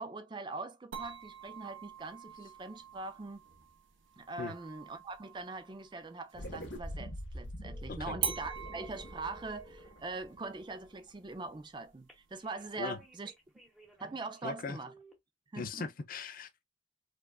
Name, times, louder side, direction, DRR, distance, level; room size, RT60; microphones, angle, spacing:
voice 1, 0.0-3.5 4.2-13.3 14.0-14.9 15.5-15.9, right 3 dB, 25° right, 0.4 m, -42 dB
sound 1, 0.9-6.5 8.2-13.2, right 7 dB, 75° right, 0.8 m, -45 dB
sound 2, 6.3-11.0, equal, 65° left, 1.3 m, -44 dB
sound 3, 7.6-9.9 12.1-14.5 14.9-15.1, right 1 dB, ahead, 0.8 m, -57 dB
voice 2, 14.4-14.8 15.6-16.6, left 4 dB, 45° left, 0.5 m, -39 dB
4.6 x 2.3 x 2.2 m
head